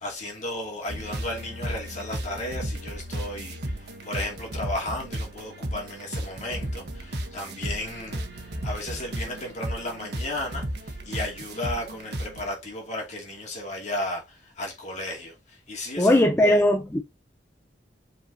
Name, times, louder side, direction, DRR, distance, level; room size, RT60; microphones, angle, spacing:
voice 1, 0.0-16.6, left 1 dB, 40° left, 2.7 m, -34 dB
sound 1, 0.9-12.5, right 1 dB, 65° right, 1.2 m, -34 dB
voice 2, 16.0-17.0, left 1 dB, 15° left, 0.6 m, -19 dB
7.6 x 4.4 x 2.9 m
head